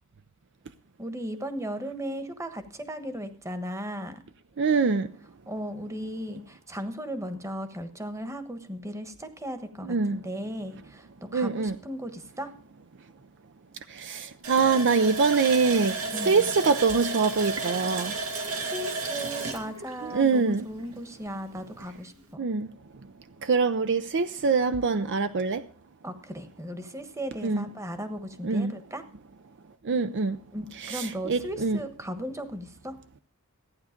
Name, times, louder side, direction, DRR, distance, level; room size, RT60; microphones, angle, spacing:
voice 1, 1.0-4.2 5.5-12.5 16.1-16.5 18.3-22.5 26.0-29.0 30.5-33.0, equal, 15° right, 1.2 m, -36 dB
voice 2, 4.6-5.1 9.9-10.2 11.3-11.8 13.9-16.0 16.2-18.1 20.0-20.7 22.4-22.7 23.4-25.6 27.4-27.7 28.4-28.7 29.8-30.4 30.8-31.8, right 4 dB, 55° right, 0.6 m, -24 dB
Water tap faucet, 14.4-20.9 21.3-21.4 21.8-22.0, right 3 dB, 90° right, 2.4 m, -33 dB
14.5 x 9.6 x 5.1 m
head